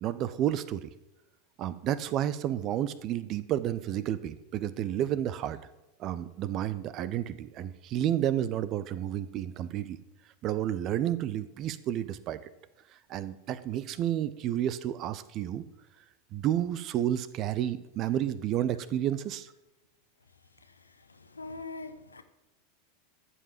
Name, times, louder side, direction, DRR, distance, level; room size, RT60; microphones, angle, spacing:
voice 1, 0.0-0.9 1.6-5.6 6.0-10.0 10.4-12.4 13.1-15.6 16.3-19.5, right 11 dB, 40° right, 16 dB, 0.8 m, -31 dB
voice 2, 20.6-22.2, left 3 dB, 80° left, 10 dB, 1.1 m, -43 dB
14.0 x 5.7 x 7.3 m, 1.0 s
figure-of-eight pair, 85°, 0 cm